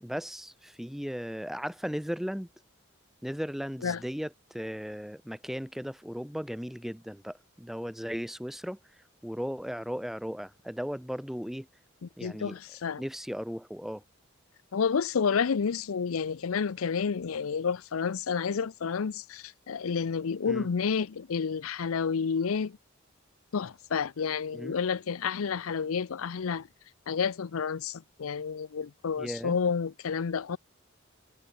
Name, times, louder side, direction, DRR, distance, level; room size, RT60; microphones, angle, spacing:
voice 1, 0.0-2.5 3.2-8.8 9.2-11.7 12.2-12.6 13.0-14.0 20.4-20.7 24.5-24.8 29.2-29.6, equal, ahead, 0.9 m, -36 dB
voice 2, 12.2-13.0 14.7-22.8 23.5-26.7 27.1-30.6, left 6 dB, 85° left, 0.5 m, -30 dB
head